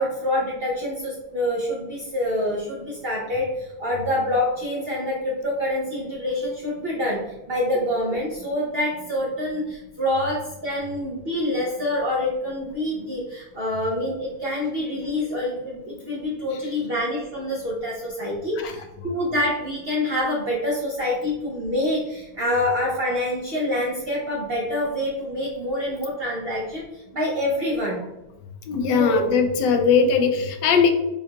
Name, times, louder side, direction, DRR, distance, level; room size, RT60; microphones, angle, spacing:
voice 1, 0.0-28.0 29.0-29.2, left 1 dB, 70° right, -4 dB, 0.5 m, -26 dB
voice 2, 28.7-30.9, left 5 dB, 90° left, 5 dB, 1.2 m, -20 dB
4.6 x 2.3 x 2.8 m, 0.99 s
omnidirectional pair, 1.8 m